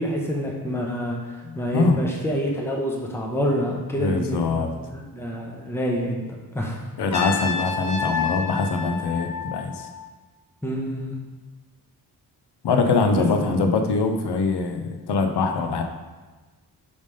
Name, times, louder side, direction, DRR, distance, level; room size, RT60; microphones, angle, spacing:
voice 1, 0.0-6.2 6.5-6.8 10.6-11.1 13.1-13.4, equal, 5° left, -2 dB, 1.0 m, -27 dB
voice 2, 1.4-2.0 4.0-4.8 7.0-9.9 12.6-15.8, left 4 dB, 80° left, 5 dB, 0.7 m, -23 dB
Trumpet, 7.1-10.1, left 4 dB, 45° left, 1.0 m, -29 dB
5.2 x 3.5 x 5.2 m, 1.3 s
cardioid pair, 65°, 40 cm